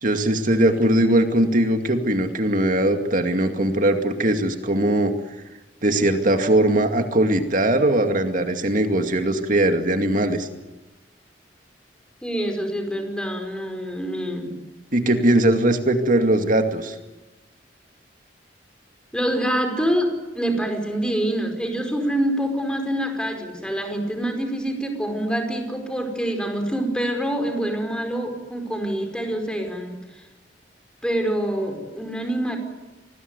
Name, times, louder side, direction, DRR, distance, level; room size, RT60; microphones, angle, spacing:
voice 1, 0.0-5.1 5.8-10.5 14.9-17.0, right 1 dB, 50° right, 6 dB, 2.3 m, -20 dB
voice 2, 12.2-14.6 19.1-30.2 31.0-32.6, right 1 dB, 5° left, 5 dB, 5.0 m, -26 dB
27.0 x 20.5 x 9.6 m, 1.1 s
head